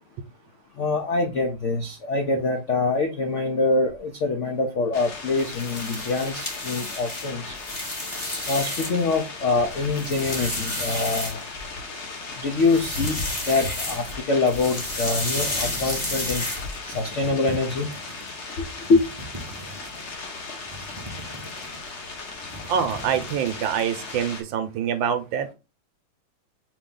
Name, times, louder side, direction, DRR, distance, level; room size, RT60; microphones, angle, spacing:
voice 1, 0.8-7.5 8.5-11.4 12.4-13.2 13.5-16.4 16.9-17.9 18.9-19.0, left 3 dB, 75° left, 0.6 m, -24 dB
sound 1, 4.9-24.4, left 3 dB, 45° left, 1.0 m, -38 dB
sound 2, 5.3-9.1 9.6-11.8 12.6-14.2 14.5-17.0, left 1 dB, 25° left, 1.2 m, -31 dB
sound 3, 15.1-16.5 16.8-18.3 18.7-20.1 20.6-22.0 22.3-24.1, equal, 25° right, 0.5 m, -41 dB
voice 2, 22.7-25.5, right 8 dB, 75° right, 1.4 m, -25 dB
4.7 x 2.7 x 3.7 m
omnidirectional pair, 2.2 m